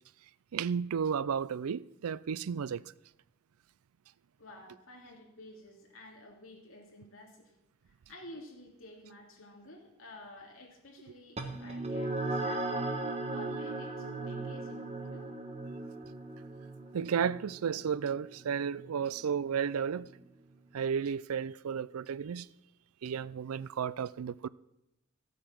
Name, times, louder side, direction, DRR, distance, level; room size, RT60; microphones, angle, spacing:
voice 1, 0.5-2.8 16.9-20.1 20.7-22.5 23.0-24.5, right 7 dB, 90° right, 0.4 m, -33 dB
voice 2, 4.4-7.5 7.9-12.8 13.3-15.3, left 1 dB, 70° left, 3.0 m, -51 dB
sound 1, 11.4-20.2, right 2 dB, 30° right, 1.1 m, -38 dB
14.5 x 8.3 x 6.0 m
head